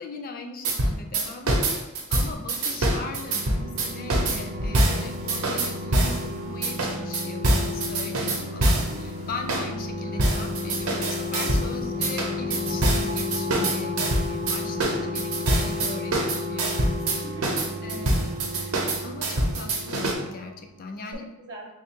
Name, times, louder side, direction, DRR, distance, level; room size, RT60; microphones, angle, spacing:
voice 1, 0.0-14.0 14.2-16.2 16.5-17.2 17.8-18.3 19.0-21.2, left 3 dB, 40° left, 4 dB, 0.4 m, -39 dB
sound 1, 0.6-6.2 6.6-9.0 9.5-9.7 10.2-11.7 12.0-20.1, right 1 dB, 85° right, 0.7 m, -25 dB
sound 2, 2.5-20.8 21.1-21.2, left 2 dB, 30° right, 0.4 m, -33 dB
voice 2, 8.4-9.3 17.2-18.2 18.5-18.8 21.1-21.7, equal, 55° right, 2 dB, 0.8 m, -43 dB
sound 3, 11.8-17.1, left 1 dB, 90° left, 0.5 m, -40 dB
3.2 x 2.3 x 4.4 m, 0.97 s
head